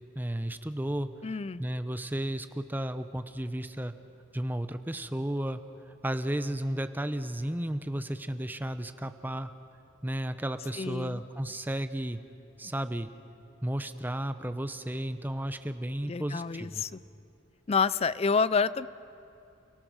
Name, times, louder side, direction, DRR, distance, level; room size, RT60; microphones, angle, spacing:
voice 1, 0.2-1.1 1.6-3.9 4.3-5.6 6.0-9.5 10.0-12.2 12.6-13.1 13.6-16.8, right 1 dB, 10° right, 10 dB, 0.7 m, -33 dB
voice 2, 1.2-1.6 10.8-11.2 16.0-17.0 17.7-18.9, left 5 dB, 30° left, 17 dB, 0.4 m, -28 dB
29.5 x 18.0 x 6.2 m, 2.8 s
head